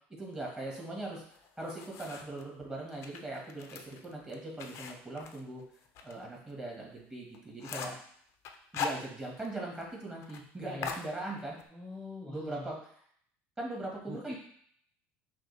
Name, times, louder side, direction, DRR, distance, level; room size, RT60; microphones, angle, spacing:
voice 1, 0.2-5.6 6.0-8.0 8.7-11.6 12.3-12.9 13.6-14.3, right 2 dB, 15° right, -2 dB, 1.3 m, -40 dB
sound 1, 1.3-2.4 2.9-6.1 6.5-6.6 7.0-7.1 7.3-8.1 8.4-9.5 9.8-9.9 10.2-10.4 10.8-11.7, left 6 dB, 55° left, 0.5 m, -41 dB
voice 2, 10.6-10.9 11.7-12.7 14.1-14.2, left 3 dB, ahead, -4 dB, 0.9 m, -44 dB
5.9 x 2.2 x 3.1 m, 0.63 s
supercardioid pair, 120°, 6 cm